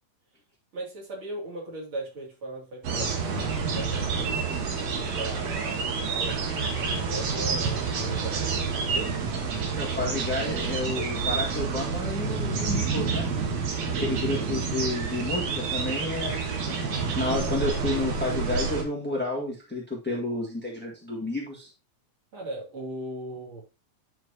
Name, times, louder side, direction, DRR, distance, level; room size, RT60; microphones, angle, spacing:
voice 1, 0.7-4.3 4.8-9.1 10.7-11.1 13.7-14.4 22.3-23.6, right 2 dB, 45° right, -3 dB, 3.3 m, -39 dB
sound 1, 2.8-18.8, right 5 dB, 65° right, 2.4 m, -28 dB
voice 2, 9.7-13.3 13.9-16.4 16.8-21.7, left 2 dB, 10° left, -2 dB, 0.6 m, -31 dB
10.5 x 4.9 x 2.8 m, 0.29 s
omnidirectional pair, 3.5 m